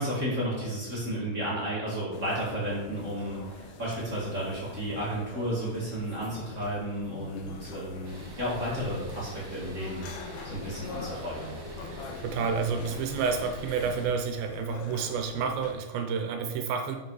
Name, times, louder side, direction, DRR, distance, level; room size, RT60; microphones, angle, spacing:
voice 1, 0.0-10.1 10.4-11.6, equal, 35° right, -7 dB, 1.2 m, -32 dB
sound 1, 2.1-15.8, left 4 dB, 85° left, 2.8 m, -44 dB
Distant speedway, 8.0-14.1, equal, 55° right, 2.4 m, -43 dB
voice 2, 11.8-17.0, right 5 dB, 80° right, 5 dB, 2.4 m, -30 dB
7.1 x 5.3 x 4.7 m, 1.1 s
omnidirectional pair, 4.4 m